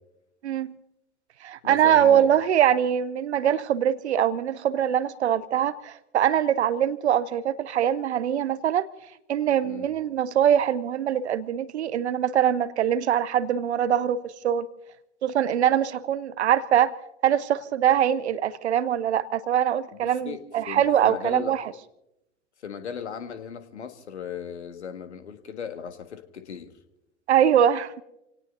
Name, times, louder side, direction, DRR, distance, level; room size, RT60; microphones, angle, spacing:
voice 1, 0.4-0.7 1.4-8.9 9.3-14.7 15.2-16.9 17.2-21.6 27.3-27.9, right 9 dB, 70° right, 0.8 m, -23 dB
voice 2, 1.6-2.3 9.6-9.9 20.0-20.4 20.7-21.5 22.6-26.7, left 7 dB, 70° left, 1.6 m, -37 dB
28.0 x 18.5 x 2.6 m
figure-of-eight pair, 85°, 35 cm